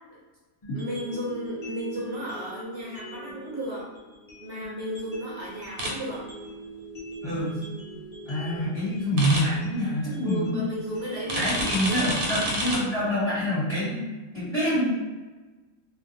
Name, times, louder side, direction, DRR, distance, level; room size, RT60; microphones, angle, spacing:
sound 1, 0.6-12.6, right 2 dB, 50° left, 0.4 m, -43 dB
voice 1, 0.7-3.9 4.4-6.3 10.2-12.3, equal, 60° right, -5 dB, 0.7 m, -34 dB
sound 2, 5.8-5.9 9.2-9.4 11.3-12.8, right 1 dB, 85° right, 1.1 m, -28 dB
voice 2, 7.2-7.6 8.3-10.6 11.4-14.1 14.3-14.9, equal, 25° left, -11 dB, 0.8 m, -26 dB
2.4 x 2.1 x 2.7 m, 1.2 s
omnidirectional pair, 1.5 m